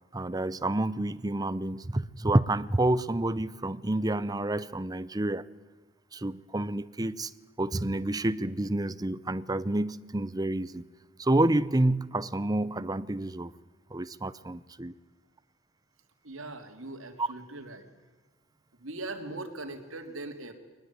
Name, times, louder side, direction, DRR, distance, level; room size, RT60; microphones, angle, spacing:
voice 1, 0.1-5.4 6.1-7.3 7.6-10.8 11.2-13.5 13.9-14.9 17.2-17.3, right 1 dB, 20° right, 0.7 m, -28 dB
voice 2, 16.2-17.8 18.8-20.5, right 2 dB, 80° right, 3.1 m, -40 dB
22.5 x 20.0 x 9.6 m
head